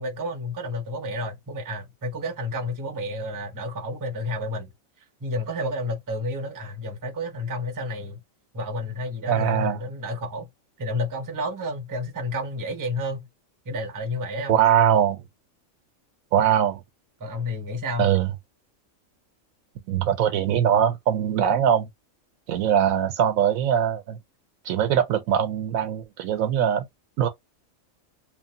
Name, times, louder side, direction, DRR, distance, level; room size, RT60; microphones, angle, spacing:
voice 1, 0.0-4.7 5.2-8.2 8.5-10.5 10.8-13.3 13.7-14.6 17.2-18.1, left 1 dB, 20° right, 0.5 m, -30 dB
voice 2, 9.3-9.8 14.5-15.2 16.3-16.8 18.0-18.3 19.9-21.9 22.5-24.2 24.7-26.9 27.2-27.3, right 9 dB, 85° right, 1.1 m, -21 dB
3.2 x 2.0 x 2.7 m
omnidirectional pair, 1.4 m